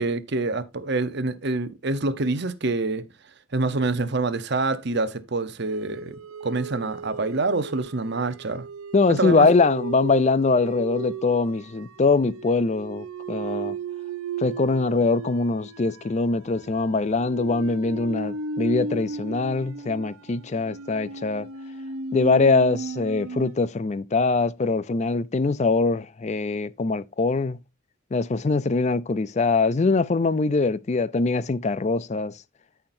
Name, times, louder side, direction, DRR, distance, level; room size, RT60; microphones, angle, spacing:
voice 1, 0.0-3.1 3.5-8.7 9.1-9.5, right 3 dB, 50° right, 0.8 m, -26 dB
sound 1, 5.6-23.6, right 3 dB, 85° right, 0.7 m, -35 dB
voice 2, 8.9-13.8 14.4-21.5 22.1-27.6 28.1-32.3, left 3 dB, 30° left, 0.4 m, -23 dB
13.0 x 5.7 x 2.6 m
head